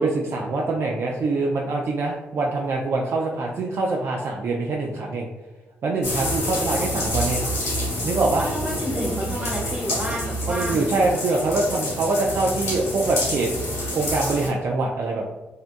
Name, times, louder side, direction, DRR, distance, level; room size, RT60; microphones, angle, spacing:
voice 1, 0.0-5.3 5.8-7.4 8.0-8.5 10.4-13.5 13.9-15.3, right 3 dB, 60° right, -1 dB, 0.3 m, -24 dB
sound 1, 6.0-14.5, left 1 dB, 85° left, 1.1 m, -28 dB
voice 2, 8.4-11.0, equal, 30° right, -3 dB, 1.2 m, -30 dB
2.6 x 2.2 x 2.5 m, 1.2 s
supercardioid pair, 55°, 5 cm